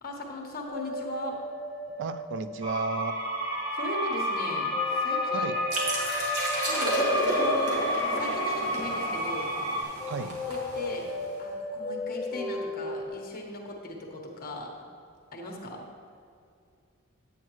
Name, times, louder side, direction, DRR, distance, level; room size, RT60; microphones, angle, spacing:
voice 1, 0.0-1.4 3.7-5.5 6.7-7.8 8.1-9.5 10.4-11.1 11.4-14.7 15.3-15.8, left 1 dB, 40° left, 0 dB, 1.2 m, -37 dB
sound 1, 0.7-3.4 4.7-8.6 10.0-13.1, left 2 dB, ahead, 1.3 m, -37 dB
voice 2, 2.0-3.2 5.3-5.6 10.0-10.4, right 4 dB, 55° right, 11 dB, 0.4 m, -33 dB
sound 2, 2.6-9.8, equal, 25° right, 1.0 m, -30 dB
sound 3, 5.7-11.2, equal, 85° right, 1.9 m, -31 dB
9.3 x 8.3 x 3.1 m, 2.4 s
head